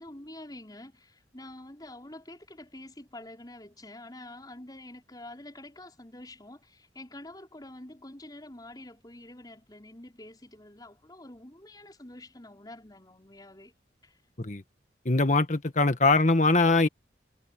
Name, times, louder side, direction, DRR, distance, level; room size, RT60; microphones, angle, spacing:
voice 1, 0.0-13.7 14.0-14.2, left 1 dB, 25° left, 5.5 m, -47 dB
voice 2, 15.1-16.9, left 3 dB, 45° left, 1.7 m, -22 dB
head